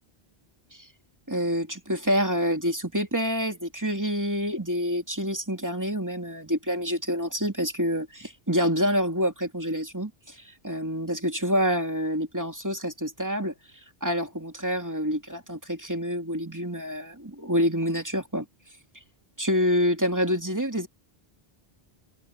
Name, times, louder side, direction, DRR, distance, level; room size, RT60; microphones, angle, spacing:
voice 1, 1.3-13.5 14.0-18.5 19.4-20.9, equal, 20° right, 2.6 m, -27 dB
omnidirectional pair, 1.0 m